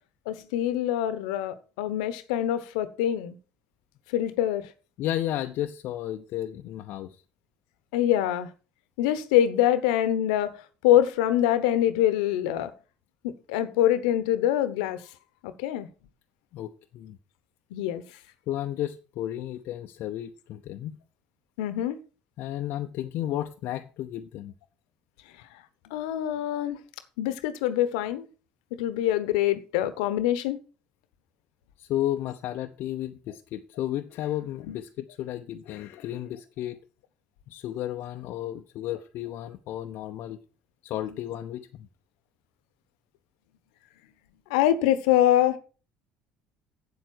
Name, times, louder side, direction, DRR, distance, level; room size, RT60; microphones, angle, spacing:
voice 1, 0.3-3.3 4.1-4.6 7.9-8.5 9.0-10.5 10.8-12.7 13.2-15.0 15.4-15.9 17.7-18.0 21.6-22.0 25.8-26.8 27.2-28.3 28.7-30.6 34.7-34.8 44.5-45.6, left 12 dB, 80° left, 1.1 m, -24 dB
voice 2, 5.0-7.1 16.5-17.2 18.5-21.0 22.4-24.5 31.8-36.8 37.5-40.4 40.8-41.9, left 12 dB, 65° left, 0.7 m, -33 dB
8.1 x 7.7 x 6.2 m
hypercardioid pair, 70°, 4 cm